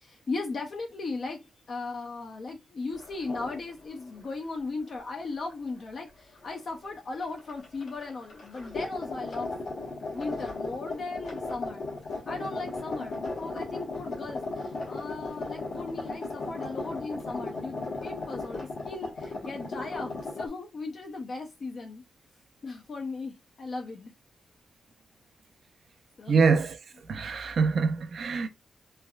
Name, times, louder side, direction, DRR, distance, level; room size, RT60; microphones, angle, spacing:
voice 1, 0.0-9.5 10.1-11.8 12.3-22.0 22.6-24.1 26.2-26.4, left 3 dB, 45° left, 0.5 m, -37 dB
sound 1, 2.9-3.6 3.9-4.2 5.5-5.6 6.7-6.9 7.2-20.5, left 3 dB, 65° left, 1.0 m, -36 dB
voice 2, 26.3-26.8 27.1-28.5, right 5 dB, 55° right, 0.4 m, -24 dB
3.2 x 2.3 x 2.3 m
wide cardioid pair, 165°, 0 cm